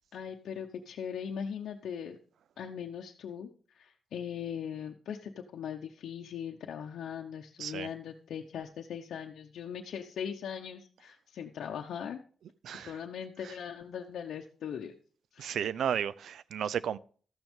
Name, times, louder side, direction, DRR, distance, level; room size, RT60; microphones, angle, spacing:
voice 1, 0.1-2.2 2.6-12.2 12.7-14.9 15.3-15.6, left 8 dB, 90° left, 0.8 m, -40 dB
voice 2, 15.4-17.0, right 9 dB, 80° right, 0.4 m, -33 dB
13.0 x 8.9 x 3.6 m
wide cardioid pair, 145°, 0 cm